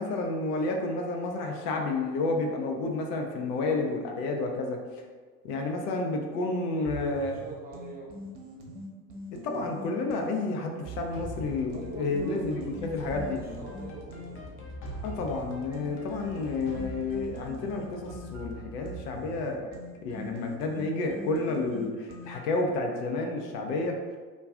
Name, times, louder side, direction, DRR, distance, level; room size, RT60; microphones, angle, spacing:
voice 1, 0.0-4.8 5.4-7.4 9.3-13.4 15.0-19.7 20.0-24.0, left 3 dB, 70° left, 2 dB, 0.6 m, -30 dB
voice 2, 6.7-8.1 11.7-14.5, right 2 dB, 20° right, -3 dB, 0.7 m, -44 dB
sound 1, 6.8-10.4 10.8-14.4 14.8-22.6, right 1 dB, 50° right, 0.8 m, -43 dB
sound 2, 11.1-20.0, left 2 dB, 25° left, 0.5 m, -43 dB
2.3 x 2.3 x 3.5 m, 1.5 s
hypercardioid pair, 75°, 49 cm